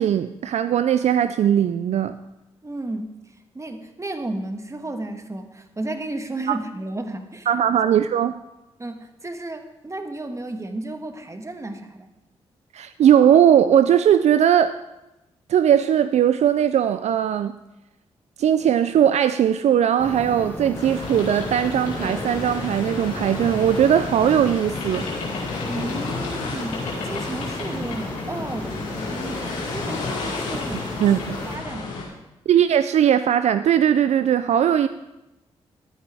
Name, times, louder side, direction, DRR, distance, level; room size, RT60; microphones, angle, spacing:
voice 1, 0.0-2.2 6.5-6.6 7.5-8.4 12.7-14.8 15.5-17.5 18.4-25.1 31.0-31.3 32.5-34.9, right 9 dB, 65° right, 12 dB, 0.4 m, -19 dB
voice 2, 2.6-3.1 3.5-7.5 8.8-12.1 25.7-31.2 31.5-32.2, right 2 dB, 25° right, 6 dB, 1.4 m, -33 dB
sound 1, 20.0-31.6, left 1 dB, 15° left, 1.6 m, -34 dB
sound 2, 20.7-32.0, left 4 dB, 90° left, 2.2 m, -32 dB
13.5 x 9.1 x 3.5 m, 0.94 s
supercardioid pair, 45°, 12 cm